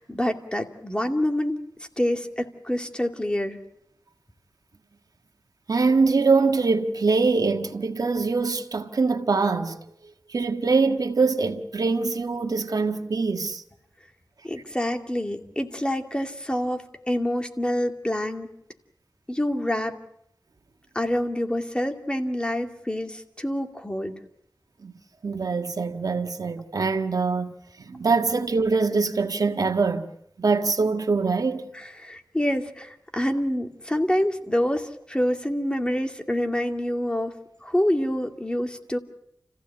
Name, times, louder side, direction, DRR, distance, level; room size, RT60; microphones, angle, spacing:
voice 1, 0.0-1.6 2.0-3.6 14.4-18.5 19.3-20.0 20.9-24.2 31.7-37.3 37.6-39.0, left 1 dB, 15° left, 2.5 m, -27 dB
voice 2, 5.7-9.8 10.3-13.6 24.8-24.9 25.2-30.1 30.4-31.7, right 4 dB, 75° right, 1.6 m, -23 dB
29.5 x 16.0 x 8.6 m
wide cardioid pair, 80°, 6 cm